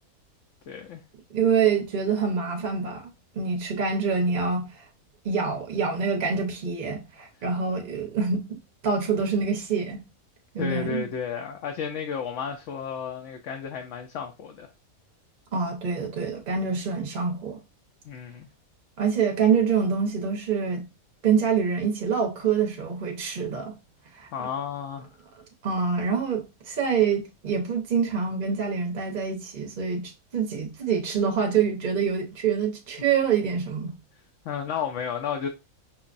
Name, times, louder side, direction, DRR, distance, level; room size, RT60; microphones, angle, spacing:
voice 1, 0.7-1.0 10.6-14.7 18.0-18.5 24.3-25.1 34.4-35.5, left 7 dB, 65° left, 0.8 m, -32 dB
voice 2, 1.3-4.8 5.2-10.0 10.5-11.1 15.5-17.6 19.0-20.9 21.2-23.7 24.1-24.3 25.6-34.0, right 6 dB, 45° right, 0.8 m, -26 dB
5.8 x 2.1 x 2.5 m
omnidirectional pair, 1.5 m